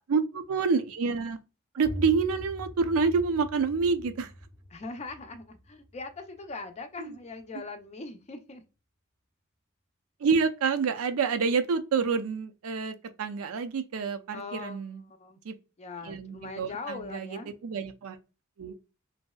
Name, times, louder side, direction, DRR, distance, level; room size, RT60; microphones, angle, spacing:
voice 1, 0.1-1.4 1.7-4.3 7.0-7.2 10.2-15.0 15.5-15.6 16.1-18.2 18.6-18.7, right 5 dB, 80° right, 0.4 m, -28 dB
sound 1, 1.8-7.4, equal, 15° right, 0.6 m, -43 dB
voice 2, 4.7-8.6 14.3-15.4 15.8-17.6, left 3 dB, 30° left, 0.5 m, -41 dB
3.1 x 2.7 x 2.2 m
head